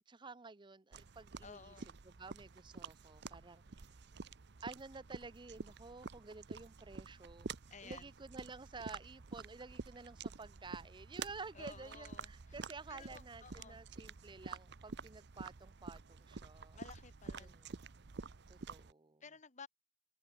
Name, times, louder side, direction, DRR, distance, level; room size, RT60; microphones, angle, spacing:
voice 1, 0.1-1.7 2.0-3.9 4.6-7.5 7.8-16.8 17.4-17.8 18.5-19.2, right 4 dB, 25° right, 0.7 m, -52 dB
sound 1, 0.9-18.9, right 4 dB, 65° right, 0.8 m, -49 dB
voice 2, 1.4-1.9 7.7-8.1 11.5-12.6 12.9-13.8 16.7-17.7 19.2-19.7, left 5 dB, 40° left, 1.5 m, -55 dB
head